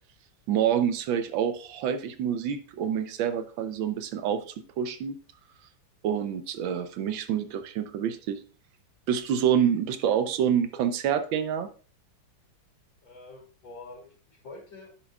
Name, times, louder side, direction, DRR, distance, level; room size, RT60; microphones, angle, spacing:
voice 1, 0.5-5.2 6.0-8.4 9.1-11.7, right 8 dB, 85° right, 10 dB, 1.5 m, -27 dB
voice 2, 13.0-15.0, left 2 dB, 80° left, -4 dB, 3.4 m, -46 dB
9.8 x 7.2 x 2.3 m, 0.40 s
omnidirectional pair, 2.1 m